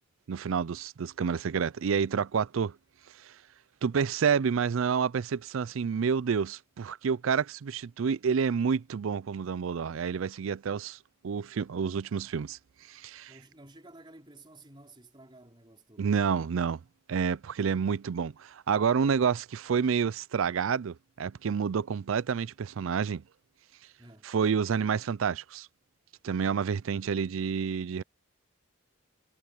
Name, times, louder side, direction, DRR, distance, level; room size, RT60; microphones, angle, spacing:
voice 1, 0.3-2.8 3.2-3.3 3.8-11.0 11.2-12.6 12.9-13.3 16.0-16.8 17.1-23.2 24.2-25.7 26.2-28.0, right 6 dB, 70° right, 0.4 m, -29 dB
voice 2, 13.3-16.5 24.0-24.3, right 2 dB, 20° right, 4.2 m, -53 dB
head